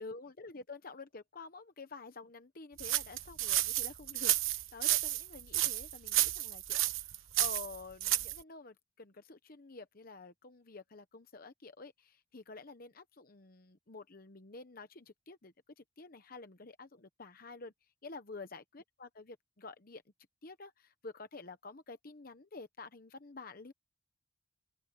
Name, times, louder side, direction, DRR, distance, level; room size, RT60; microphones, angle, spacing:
voice 1, 0.0-17.7 18.0-20.0 20.4-23.7, left 3 dB, 45° left, 1.0 m, -49 dB
sound 1, 2.8-8.4, right 15 dB, 80° right, 1.2 m, -31 dB
open air
head